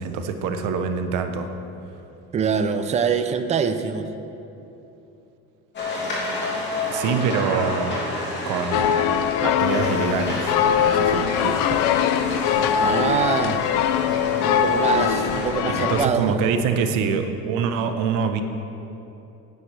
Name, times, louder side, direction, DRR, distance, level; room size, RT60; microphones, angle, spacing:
voice 1, 0.0-1.5 6.9-8.0 8.4-9.0 9.4-10.5 10.8-11.9 15.8-18.4, right 6 dB, 75° right, 7 dB, 1.0 m, -25 dB
voice 2, 2.3-4.1 12.8-13.7 14.4-16.4, right 6 dB, 20° right, 9 dB, 0.5 m, -24 dB
sound 1, 5.7-15.6, left 2 dB, 35° left, 2.6 m, -30 dB
sound 2, 8.7-16.1, left 9 dB, 80° left, 0.6 m, -22 dB
17.0 x 9.6 x 3.4 m, 2.9 s
cardioid pair, 160°, 31 cm